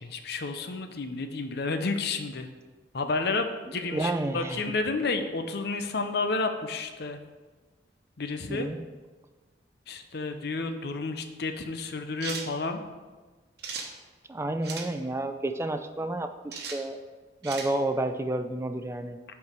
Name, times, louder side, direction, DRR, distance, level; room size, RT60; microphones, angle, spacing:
voice 1, 0.0-2.5 2.9-7.2 8.2-8.7 9.9-12.8, left 3 dB, 60° left, 7 dB, 0.7 m, -31 dB
voice 2, 3.9-4.6 8.5-8.8 14.3-17.0 17.4-19.2, right 2 dB, 15° right, 9 dB, 0.4 m, -30 dB
sound 1, 12.2-12.5 13.6-13.9 14.6-14.9 16.5-16.8 17.4-17.7, right 5 dB, 60° right, 1.1 m, -36 dB
8.4 x 4.6 x 5.3 m, 1.3 s
head